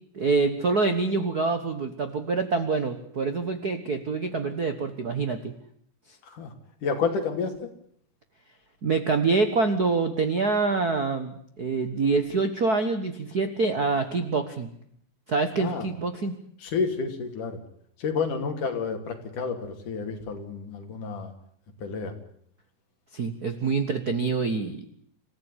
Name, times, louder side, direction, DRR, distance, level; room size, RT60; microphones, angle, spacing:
voice 1, 0.1-5.5 8.8-14.7 15.3-16.4 23.1-24.8, right 4 dB, 85° right, 8 dB, 0.8 m, -26 dB
voice 2, 6.8-7.7 15.5-15.9 16.6-17.6 18.0-21.3 21.8-22.2, left 5 dB, 60° left, 5 dB, 4.2 m, -30 dB
27.0 x 15.0 x 10.0 m, 0.67 s
omnidirectional pair, 4.1 m